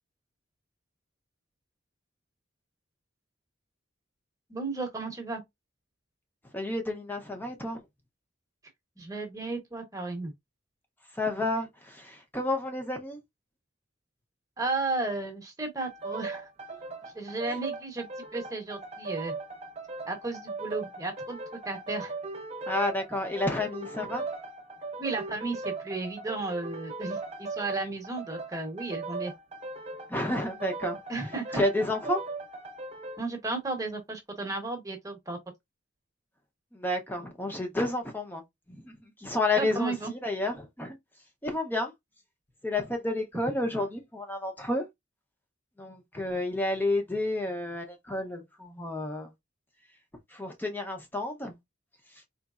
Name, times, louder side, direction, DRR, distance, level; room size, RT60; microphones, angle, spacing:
voice 1, 4.5-5.4 9.0-10.3 14.6-16.5 17.1-19.3 20.1-21.4 21.6-22.1 25.0-29.3 31.1-31.6 33.2-35.4 39.5-40.1, right 3 dB, 15° right, 1.0 m, -34 dB
voice 2, 6.5-7.8 11.1-13.2 17.5-17.6 22.7-24.2 30.1-31.0 31.5-32.2 36.7-38.4 38.7-41.0 41.4-41.9 42.6-44.9 45.8-49.3 50.3-51.6, left 2 dB, 10° left, 0.7 m, -30 dB
sound 1, 15.8-33.2, right 3 dB, 30° right, 0.6 m, -39 dB
4.0 x 3.2 x 2.4 m
head